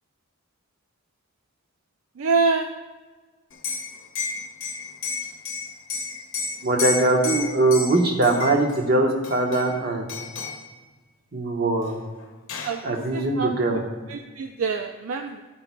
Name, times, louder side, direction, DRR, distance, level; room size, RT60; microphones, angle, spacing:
voice 1, 2.2-2.7 12.6-12.8 13.1-13.5 14.1-15.4, right 4 dB, 65° right, 6 dB, 0.4 m, -25 dB
Liquid, 3.5-8.8 9.2-9.8 10.1-10.7 11.8-11.9 12.2-12.8, left 4 dB, 60° left, 1.0 m, -32 dB
voice 2, 6.6-10.0 11.3-12.0 12.8-13.8, right 2 dB, 45° right, 2 dB, 1.1 m, -21 dB
11.5 x 8.7 x 2.2 m, 1.3 s
head